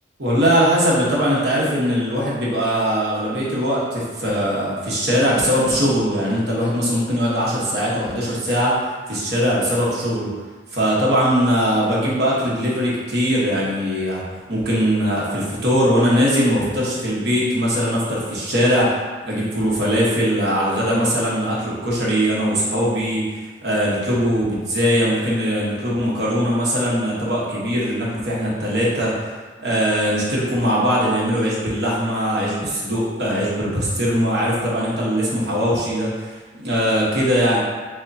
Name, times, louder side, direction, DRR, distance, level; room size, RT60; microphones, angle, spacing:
voice 1, 0.2-8.8 9.1-10.3 10.7-14.2 14.5-37.6, equal, 65° right, -6 dB, 1.1 m, -21 dB
6.3 x 2.2 x 2.6 m, 1.3 s
head